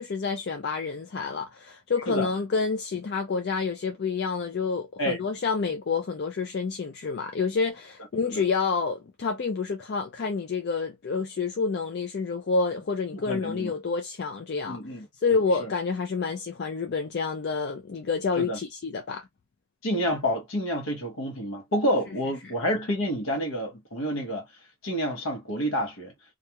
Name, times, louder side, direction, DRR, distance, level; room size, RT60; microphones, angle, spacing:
voice 1, 0.0-14.8 15.2-19.3, left 4 dB, 50° left, 0.4 m, -28 dB
voice 2, 13.1-13.7 14.7-15.1 15.3-15.7 18.4-18.6 19.8-24.5 24.8-26.1, equal, 70° left, 0.9 m, -29 dB
2.3 x 2.3 x 2.8 m
head